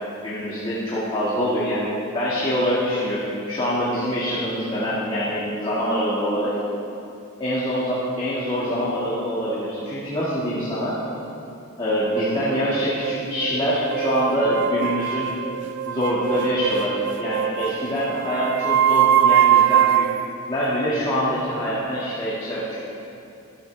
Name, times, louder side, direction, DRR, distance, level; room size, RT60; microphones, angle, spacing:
voice 1, 0.2-6.5 7.4-11.0 11.8-15.3 15.8-20.1 20.5-22.8, equal, 25° left, -9 dB, 1.9 m, -24 dB
sound 1, 12.2-20.3, right 10 dB, 55° right, 0.4 m, -22 dB
13.5 x 13.0 x 3.3 m, 2.8 s
head